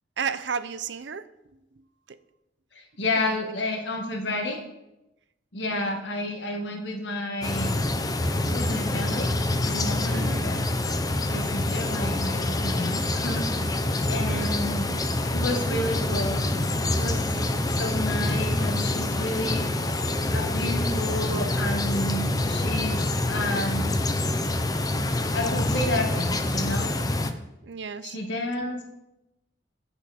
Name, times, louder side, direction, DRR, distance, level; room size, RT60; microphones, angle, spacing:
voice 1, 0.2-1.3 1.8-2.2 3.3-3.4 5.7-6.0 10.1-10.4 14.3-14.6 25.7-26.0 27.6-28.2, right 6 dB, 80° right, 13 dB, 0.6 m, -34 dB
voice 2, 2.7-4.6 5.5-7.8 8.5-9.3 9.6-10.7 11.3-13.5 14.1-14.9 15.3-16.4 16.9-17.2 17.7-19.7 20.3-23.0 23.3-24.0 25.3-26.9 28.0-28.9, left 1 dB, 85° left, 2 dB, 1.7 m, -30 dB
sound 1, 7.4-27.3, left 2 dB, 20° left, 0.7 m, -26 dB
16.5 x 5.7 x 4.2 m, 0.93 s
head